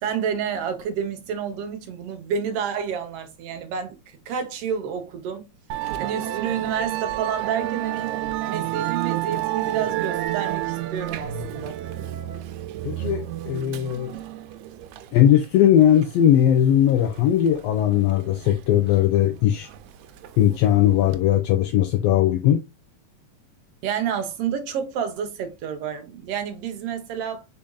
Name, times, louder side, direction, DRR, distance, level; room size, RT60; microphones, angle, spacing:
voice 1, 0.0-5.5 6.0-8.1 8.5-11.8 23.8-27.4, right 7 dB, 65° right, 1.7 m, -29 dB
Musical instrument, 5.7-21.2, right 14 dB, 85° right, 1.9 m, -31 dB
voice 2, 12.8-14.1 15.1-19.7 20.4-22.6, left 11 dB, 80° left, 1.5 m, -19 dB
5.3 x 4.2 x 2.3 m
omnidirectional pair, 3.3 m